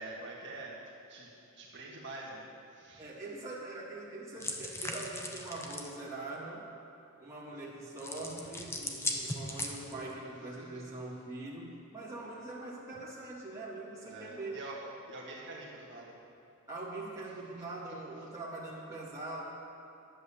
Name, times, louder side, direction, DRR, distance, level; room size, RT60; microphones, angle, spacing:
voice 1, 0.0-3.1 10.6-10.8 14.0-16.1, right 2 dB, 55° right, -4 dB, 1.7 m, -46 dB
voice 2, 3.0-6.7 7.2-14.6 16.7-19.4, right 2 dB, 15° right, -7 dB, 2.7 m, -43 dB
sound 1, 4.4-5.9 8.0-10.1, left 1 dB, 10° left, 0.9 m, -38 dB
11.0 x 8.4 x 7.1 m, 3.0 s
head